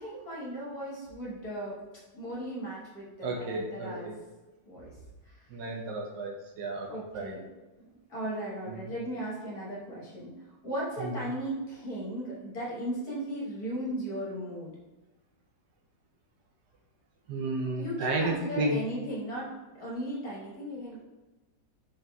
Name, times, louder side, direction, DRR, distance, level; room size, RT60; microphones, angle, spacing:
voice 1, 0.0-1.7 2.1-4.1 4.6-4.9 5.2-5.4 6.9-7.4 7.8-10.3 10.6-14.7 17.8-21.0, right 1 dB, 60° left, -6 dB, 1.6 m, -36 dB
voice 2, 3.2-4.2 5.5-6.9 7.1-7.3 11.0-11.1 17.3-18.8, right 2 dB, 70° right, 0 dB, 1.1 m, -32 dB
4.1 x 3.6 x 2.2 m, 1.1 s
omnidirectional pair, 1.9 m